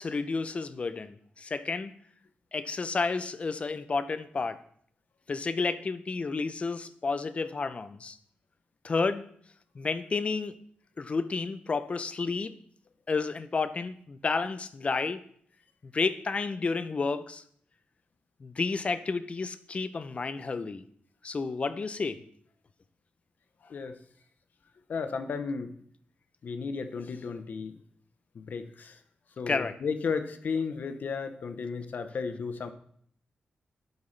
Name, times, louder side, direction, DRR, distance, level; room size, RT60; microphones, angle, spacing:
voice 1, 0.0-1.9 2.5-4.6 5.3-8.2 8.8-9.2 9.8-10.5 11.0-12.5 13.1-15.2 15.8-17.4 18.4-20.8 21.2-22.2 29.5-29.7, left 4 dB, 35° left, 12 dB, 0.6 m, -31 dB
voice 2, 23.6-24.0 24.9-25.7 26.4-27.8 28.3-29.0 29.4-32.7, left 5 dB, 60° left, 9 dB, 0.8 m, -34 dB
11.0 x 8.2 x 3.3 m, 0.63 s
wide cardioid pair, 120°, 3 cm